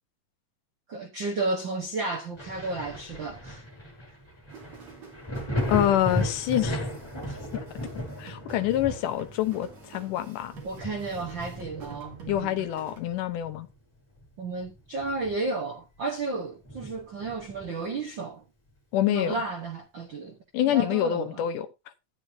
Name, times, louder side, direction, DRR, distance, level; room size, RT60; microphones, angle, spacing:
voice 1, 0.9-3.6 7.3-7.4 10.6-12.7 14.4-18.4 19.1-20.4 20.6-21.4, right 3 dB, 75° right, 1.0 m, -33 dB
Thunder, 2.4-13.7 14.1-15.6 16.0-16.1 16.6-17.9 19.3-19.4, left 1 dB, 5° left, 7.1 m, -36 dB
sound 1, 4.5-13.0, right 4 dB, 50° right, 3.7 m, -49 dB
voice 2, 5.7-6.9 7.8-7.9 8.2-10.6 12.3-13.7 18.9-19.4 20.5-21.7, left 12 dB, 75° left, 2.2 m, -26 dB
13.0 x 9.7 x 2.7 m
omnidirectional pair, 4.0 m